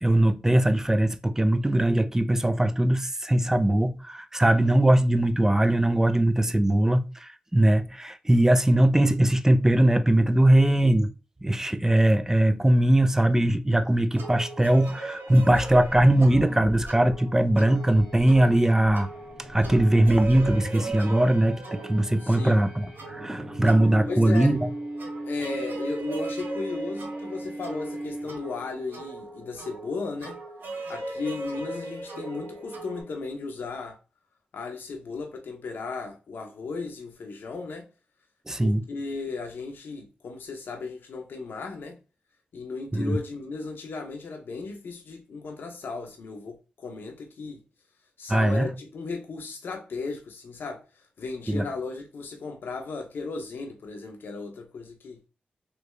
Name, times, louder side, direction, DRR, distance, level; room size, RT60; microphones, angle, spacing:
voice 1, 0.0-11.1 11.4-19.1 19.5-24.7 38.5-38.8 42.9-43.2 48.3-48.7 51.5-51.6, right 1 dB, 15° right, 0.5 m, -21 dB
sound 1, 14.2-33.0, right 3 dB, 75° right, 0.9 m, -39 dB
sound 2, 15.3-17.2 17.5-17.6 17.9-18.4 18.8-20.9, left 2 dB, 20° left, 1.1 m, -38 dB
sound 3, 17.7-28.7, right 1 dB, 35° right, 1.4 m, -39 dB
voice 2, 22.2-22.6 24.1-24.5 25.3-30.4 30.9-34.0 34.5-37.8 38.6-42.0 42.5-47.6 48.2-55.2, left 4 dB, 75° left, 0.7 m, -35 dB
3.2 x 2.7 x 3.2 m
cardioid pair, 50°, 3 cm